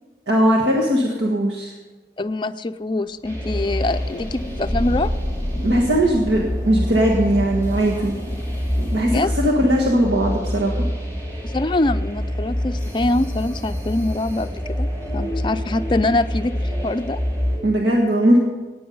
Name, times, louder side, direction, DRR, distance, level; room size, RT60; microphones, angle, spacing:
voice 1, 0.3-1.7 5.6-8.1 8.8-10.8 17.6-18.4, right 1 dB, 85° right, -2 dB, 1.6 m, -19 dB
voice 2, 2.2-5.1 9.0-9.3 11.4-14.9 15.1-17.2, left 2 dB, 25° left, 9 dB, 0.4 m, -24 dB
sound 1, 3.2-17.6, equal, 20° right, 2.9 m, -27 dB
Thunder / Rain, 3.4-9.1, equal, 50° right, 3.6 m, -31 dB
16.0 x 9.4 x 5.4 m, 1.2 s
head